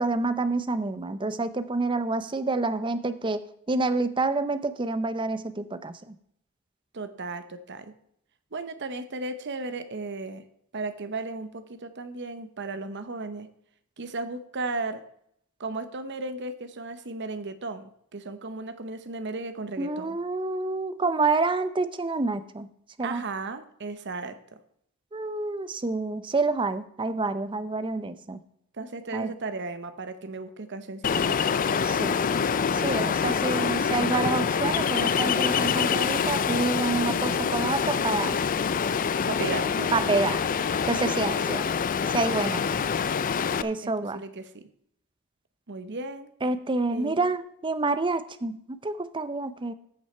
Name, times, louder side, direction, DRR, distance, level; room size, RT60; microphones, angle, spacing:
voice 1, 0.0-6.1 19.8-22.7 23.0-23.2 25.1-28.4 29.1-29.3 31.8-32.2 32.7-38.4 39.9-40.4 40.9-41.6 42.1-42.6 43.6-44.2 46.4-49.7, right 3 dB, 20° right, 12 dB, 0.6 m, -28 dB
voice 2, 6.9-7.9 8.5-10.4 10.7-13.5 14.0-15.0 15.6-20.2 23.0-24.6 28.8-31.6 39.3-40.0 43.8-44.7 45.7-46.3 46.9-47.3, right 3 dB, 50° right, 10 dB, 0.9 m, -35 dB
Ocean, 31.0-43.6, left 6 dB, 35° left, 0.4 m, -26 dB
14.0 x 6.1 x 4.4 m, 0.71 s
head